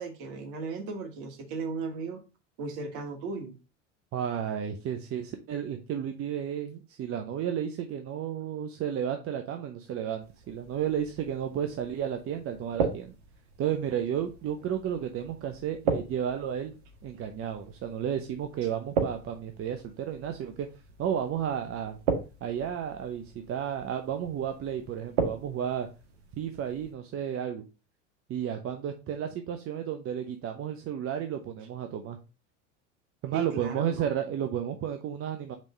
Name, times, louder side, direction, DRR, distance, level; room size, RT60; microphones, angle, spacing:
voice 1, 0.0-2.2 2.6-3.6 33.3-34.1, right 4 dB, 55° right, 4 dB, 2.0 m, -36 dB
voice 2, 4.1-13.1 13.6-16.7 17.0-20.7 21.0-22.0 22.4-25.9 26.4-27.6 28.3-32.2 33.2-35.5, right 9 dB, 40° right, 5 dB, 0.9 m, -32 dB
sound 1, 10.2-26.9, right 5 dB, 75° right, 1.7 m, -37 dB
5.2 x 3.6 x 5.2 m, 0.30 s
hypercardioid pair, 90°, 36 cm